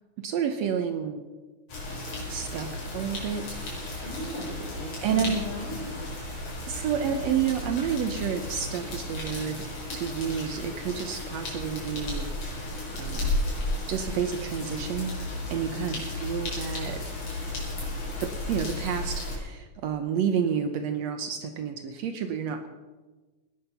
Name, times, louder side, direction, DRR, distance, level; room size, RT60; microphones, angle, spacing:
voice 1, 0.2-1.2 2.3-3.6 3.9-4.2 5.0-5.4 6.7-9.7 9.9-12.6 12.9-13.3 13.9-15.1 15.5-17.0 18.2-22.7, right 8 dB, 70° right, 7 dB, 1.9 m, -30 dB
sound 1, 1.7-19.4, left 2 dB, 80° left, 6.0 m, -34 dB
voice 2, 4.0-6.1 15.7-16.1, left 2 dB, 50° left, -3 dB, 6.2 m, -38 dB
18.5 x 12.0 x 5.6 m, 1.3 s
omnidirectional pair, 3.5 m